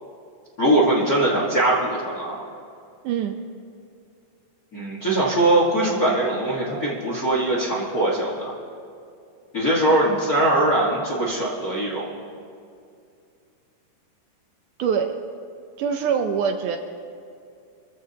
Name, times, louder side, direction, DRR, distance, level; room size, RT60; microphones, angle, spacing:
voice 1, 0.6-2.4 4.7-8.5 9.5-12.1, right 1 dB, 40° left, -4 dB, 1.4 m, -21 dB
voice 2, 3.0-3.4 14.8-15.2 15.8-16.8, right 7 dB, 75° right, 5 dB, 2.0 m, -23 dB
24.5 x 14.5 x 2.9 m, 2.5 s
omnidirectional pair, 4.0 m